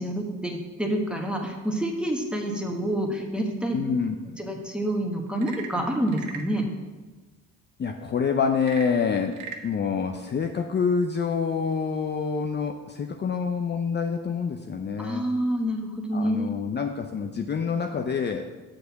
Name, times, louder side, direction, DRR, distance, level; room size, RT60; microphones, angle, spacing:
voice 1, 0.0-3.8 4.4-6.7 15.0-16.5, right 1 dB, 5° right, 1 dB, 1.3 m, -28 dB
voice 2, 3.7-4.2 7.8-15.3 16.1-18.5, left 6 dB, 35° left, 4 dB, 0.6 m, -27 dB
Frog / Percussion / Wood, 5.3-6.6 8.5-9.7, right 6 dB, 90° right, 0.8 m, -40 dB
6.5 x 4.9 x 6.8 m, 1.3 s
cardioid pair, 90°, 30 cm